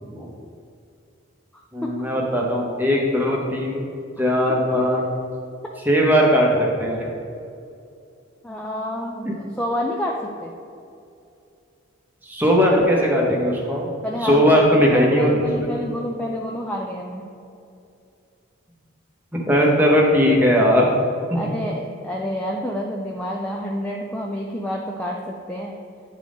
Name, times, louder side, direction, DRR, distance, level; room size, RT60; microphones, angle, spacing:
voice 1, 1.7-3.9 4.2-5.0 5.8-7.1 9.2-9.3 12.2-13.9 14.2-15.7 19.3-20.9 21.3-21.4, equal, 10° right, -2 dB, 0.9 m, -19 dB
voice 2, 4.2-4.6 8.4-10.5 14.0-14.6 14.9-17.3 21.3-25.8, equal, 5° left, -1 dB, 0.3 m, -29 dB
9.8 x 3.8 x 3.5 m, 2.6 s
head